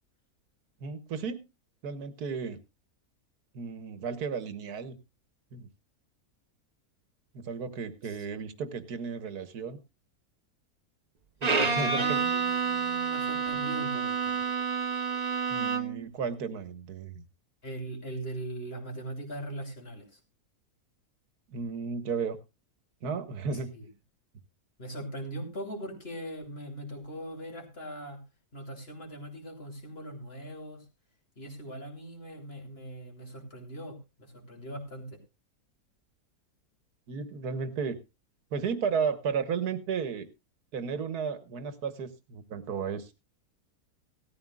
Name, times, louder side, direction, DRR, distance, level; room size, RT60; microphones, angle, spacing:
voice 1, 0.8-1.4 1.8-2.6 3.5-5.0 5.5-5.7 7.3-9.8 11.4-12.2 15.5-17.2 21.5-22.4 23.0-23.7 37.1-38.0 38.5-40.3 40.7-43.2, right 6 dB, 80° right, 12 dB, 1.7 m, -34 dB
voice 2, 8.0-8.5 11.6-14.5 17.6-20.2 23.7-23.9 24.8-28.2 28.5-30.8 31.4-35.2, right 1 dB, 40° left, 3 dB, 3.0 m, -40 dB
Bowed string instrument, 11.4-16.1, right 5 dB, 30° right, 1.0 m, -29 dB
17.0 x 13.5 x 2.4 m, 0.26 s
omnidirectional pair, 1.6 m